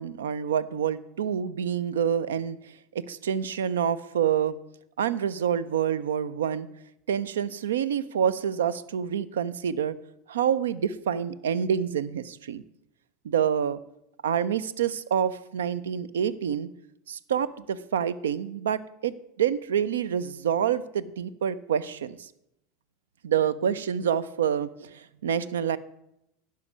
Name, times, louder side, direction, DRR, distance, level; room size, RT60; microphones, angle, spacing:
voice 1, 0.0-2.6 2.9-4.6 5.0-6.7 7.1-10.0 10.3-12.6 13.2-13.8 14.2-16.7 17.1-22.3 23.2-25.8, right 8 dB, 70° right, 18 dB, 0.4 m, -27 dB
10.5 x 5.7 x 6.2 m, 0.81 s
figure-of-eight pair, 80°, 0 cm